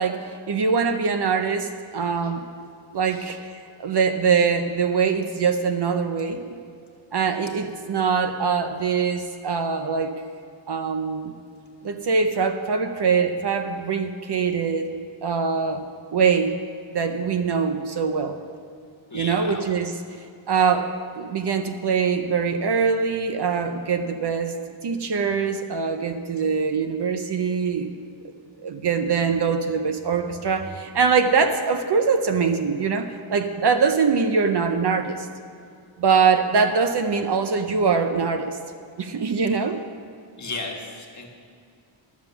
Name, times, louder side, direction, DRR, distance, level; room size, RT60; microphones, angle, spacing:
voice 1, 0.0-2.5 2.9-6.4 7.1-10.1 10.7-11.3 11.8-14.9 15.2-15.8 16.1-16.6 16.9-18.4 19.1-24.5 24.8-27.9 28.6-35.3 36.0-38.6 39.0-39.8, right 5 dB, 55° right, 7 dB, 0.7 m, -23 dB
voice 2, 19.1-19.7 40.4-41.3, left 3 dB, 35° left, 0 dB, 1.6 m, -35 dB
12.5 x 7.2 x 6.8 m, 2.4 s
wide cardioid pair, 150°, 49 cm